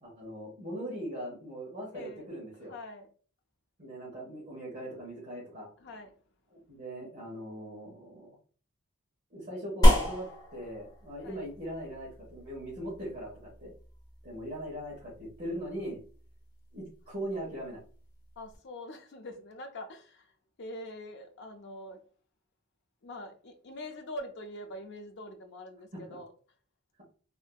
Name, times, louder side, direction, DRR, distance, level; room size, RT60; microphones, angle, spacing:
voice 1, 0.0-2.7 3.8-5.7 6.5-8.3 9.3-13.7 14.2-16.0 16.7-17.8 25.9-26.0, equal, 40° right, 1.1 m, -40 dB
voice 2, 1.9-2.3 2.7-3.1 5.8-6.2 11.2-11.5 18.4-20.3 20.6-22.0 23.0-26.3, left 1 dB, 50° left, 0.4 m, -44 dB
sound 1, 9.8-18.6, equal, 15° left, 0.7 m, -31 dB
3.6 x 2.6 x 2.2 m
head